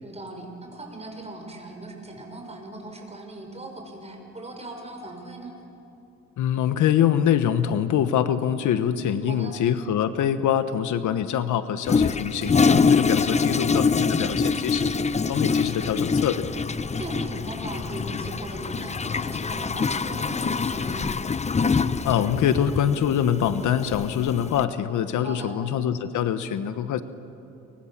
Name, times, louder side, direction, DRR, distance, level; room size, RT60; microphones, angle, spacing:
voice 1, 0.0-5.5 9.2-9.5 13.1-13.5 17.0-21.1 25.2-25.5, right 2 dB, 20° right, 3 dB, 6.2 m, -39 dB
voice 2, 6.4-14.9 15.3-16.5 22.0-27.0, left 9 dB, 75° left, 11 dB, 1.2 m, -24 dB
Toilet flush, 11.9-24.6, left 5 dB, 20° left, 0.7 m, -25 dB
29.0 x 24.0 x 7.4 m, 2.8 s
cardioid pair, 90°, 30 cm